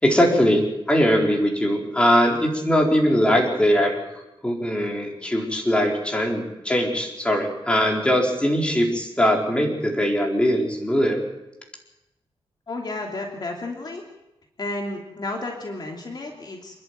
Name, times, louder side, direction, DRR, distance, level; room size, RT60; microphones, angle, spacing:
voice 1, 0.0-4.0 4.4-11.2, equal, 10° left, 0 dB, 4.3 m, -21 dB
voice 2, 12.7-14.0 14.6-16.8, left 2 dB, 45° left, 1 dB, 2.8 m, -32 dB
27.5 x 11.5 x 9.3 m, 0.96 s
wide cardioid pair, 120°, 10 cm